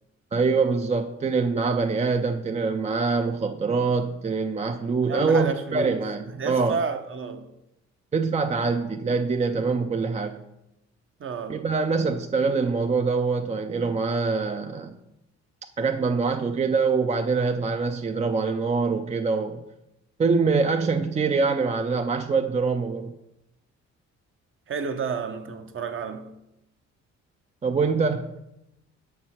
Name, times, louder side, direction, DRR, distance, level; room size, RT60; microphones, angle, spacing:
voice 1, 0.3-6.8 8.1-10.4 11.5-15.0 15.8-19.6 20.2-23.1 27.6-28.4, right 4 dB, 20° right, 0.4 m, -24 dB
voice 2, 5.1-6.0 6.4-7.5 11.2-11.6 24.7-26.4, right 5 dB, 45° right, 0.8 m, -31 dB
6.9 x 4.7 x 5.7 m
cardioid pair, 90°, 30 cm